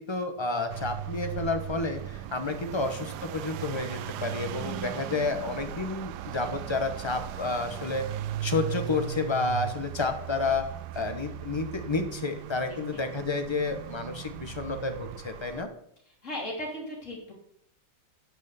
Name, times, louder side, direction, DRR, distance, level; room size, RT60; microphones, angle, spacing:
voice 1, 0.0-8.1 8.4-10.7 10.9-15.7, left 3 dB, 20° left, 6 dB, 0.9 m, -30 dB
sound 1, 0.7-15.6, right 12 dB, 75° right, 1.1 m, -38 dB
voice 2, 2.8-3.1 12.7-13.0 16.2-17.3, left 1 dB, 40° left, -1 dB, 3.2 m, -38 dB
9.4 x 6.4 x 6.9 m, 0.69 s
omnidirectional pair, 1.9 m